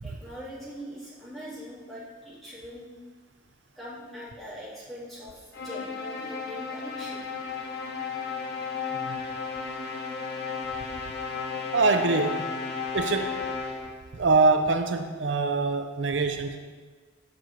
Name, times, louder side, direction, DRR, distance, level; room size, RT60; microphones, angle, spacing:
voice 1, 0.0-2.9 3.7-7.2 8.7-9.0, equal, ahead, -10 dB, 3.2 m, -42 dB
sound 1, 5.5-14.1, left 5 dB, 55° left, 1.5 m, -34 dB
voice 2, 8.9-9.2 11.7-12.5 12.9-13.4 14.1-16.6, right 3 dB, 70° right, 6 dB, 0.6 m, -24 dB
7.6 x 6.0 x 7.8 m, 1.5 s
head